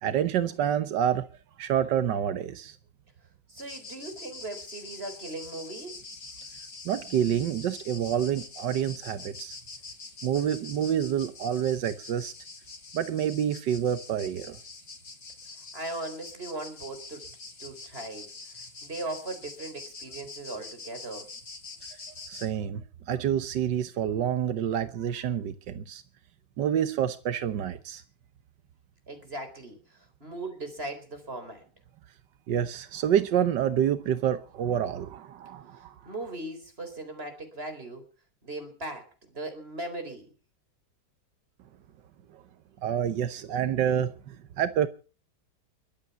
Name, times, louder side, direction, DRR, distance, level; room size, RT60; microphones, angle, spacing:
voice 1, 0.0-1.3 1.6-2.8 6.8-9.6 10.2-12.3 12.9-14.6 22.3-26.0 26.6-28.0 32.5-35.9 42.3-42.4 42.8-44.9, right 9 dB, 85° right, 1.6 m, -28 dB
voice 2, 3.5-6.0 15.7-17.2 17.6-21.3 29.1-31.6 35.7-38.0 38.4-40.3, right 2 dB, 35° right, 4.3 m, -39 dB
sound 1, 3.6-22.5, left 3 dB, 55° left, 2.8 m, -45 dB
22.5 x 8.8 x 6.9 m
omnidirectional pair, 1.8 m